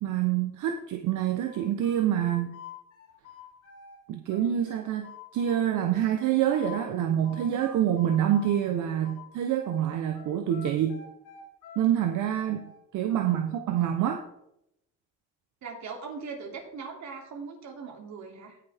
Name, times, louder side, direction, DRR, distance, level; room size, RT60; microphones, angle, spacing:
voice 1, 0.0-2.5 4.1-11.0 11.8-12.6 12.9-14.2, right 10 dB, 85° right, 5 dB, 0.9 m, -26 dB
sound 1, 1.4-4.0 4.3-6.8 7.2-9.8 10.1-12.8, left 7 dB, 80° left, 4.5 m, -47 dB
voice 2, 13.1-13.4 15.6-18.6, right 5 dB, 70° right, 2 dB, 2.8 m, -40 dB
17.5 x 5.8 x 3.5 m, 0.79 s
cardioid pair, 90°, 30 cm